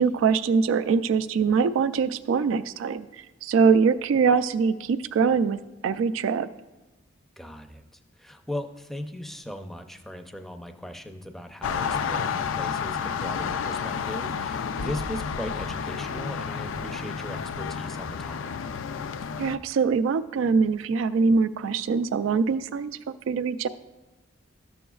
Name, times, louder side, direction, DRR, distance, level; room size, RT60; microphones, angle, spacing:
voice 1, 0.0-3.1 3.4-5.6 5.8-6.5 19.4-22.9 23.3-23.7, right 5 dB, 80° right, 14 dB, 0.3 m, -23 dB
voice 2, 7.4-18.5, left 1 dB, ahead, 5 dB, 0.5 m, -38 dB
sound 1, 11.6-19.6, left 6 dB, 80° left, 0.4 m, -30 dB
13.0 x 6.9 x 2.3 m, 1.1 s
head